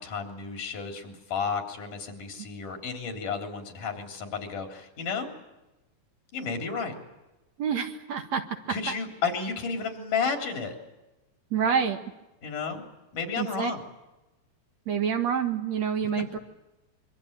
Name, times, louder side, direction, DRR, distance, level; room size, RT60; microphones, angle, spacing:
voice 1, 0.0-5.3 6.3-6.9 8.7-10.8 12.4-12.8 13.1-13.8, left 5 dB, 75° left, 4 dB, 5.1 m, -32 dB
voice 2, 7.6-8.4 8.9-9.0 11.5-12.0 13.4-13.7 14.9-16.4, right 7 dB, 60° right, 6 dB, 2.6 m, -27 dB
25.5 x 24.5 x 8.9 m, 1.0 s
omnidirectional pair, 3.7 m